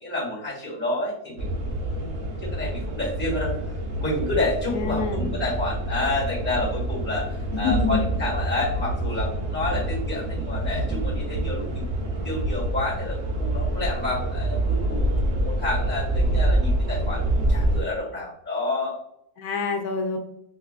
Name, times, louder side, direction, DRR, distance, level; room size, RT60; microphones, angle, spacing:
voice 1, 0.0-1.5 1.7-3.5 4.0-7.3 7.6-17.2 17.5-19.0, left 2 dB, 10° left, -5 dB, 1.2 m, -29 dB
sound 1, 1.4-17.8, right 1 dB, 55° right, 0.9 m, -26 dB
voice 2, 4.7-5.4 7.5-8.0 19.4-20.2, left 4 dB, 80° left, 3 dB, 1.1 m, -26 dB
4.6 x 2.3 x 2.3 m, 0.73 s
omnidirectional pair, 1.6 m